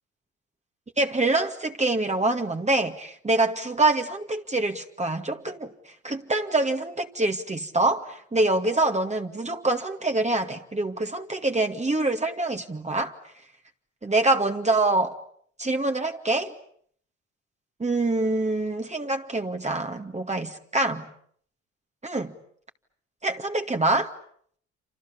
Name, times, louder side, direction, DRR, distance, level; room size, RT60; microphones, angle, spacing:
voice 1, 1.0-5.7 6.0-13.1 14.0-15.1 15.6-16.5 17.8-21.1 22.0-22.4 23.2-24.1, right 2 dB, 20° right, 2.2 m, -25 dB
28.0 x 28.0 x 7.1 m
hypercardioid pair, 55°, 37 cm